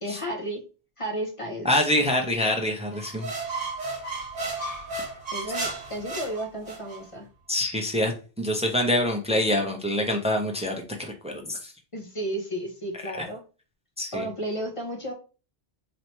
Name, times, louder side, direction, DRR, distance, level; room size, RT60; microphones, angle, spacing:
voice 1, 0.0-0.6 1.0-1.7 5.3-7.3 11.9-13.4 14.1-15.1, right 1 dB, 35° left, 2 dB, 0.7 m, -33 dB
voice 2, 1.6-3.3 7.5-8.1 8.4-11.7 14.0-14.2, left 1 dB, 10° right, 3 dB, 0.4 m, -25 dB
sound 1, 2.9-7.0, right 3 dB, 35° right, 1.3 m, -33 dB
3.0 x 2.8 x 4.4 m, 0.34 s
omnidirectional pair, 1.2 m